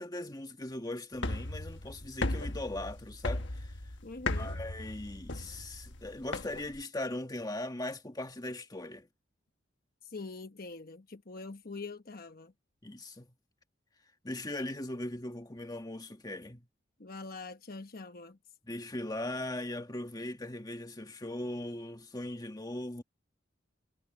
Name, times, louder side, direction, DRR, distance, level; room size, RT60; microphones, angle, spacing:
voice 1, 0.0-3.7 4.4-9.1 12.8-13.3 14.2-16.7 18.7-23.0, left 1 dB, 20° left, 1.6 m, -39 dB
sound 1, 1.1-6.8, left 2 dB, 65° left, 1.4 m, -37 dB
voice 2, 4.0-4.5 10.0-12.5 17.0-18.4, left 3 dB, 50° left, 1.1 m, -44 dB
head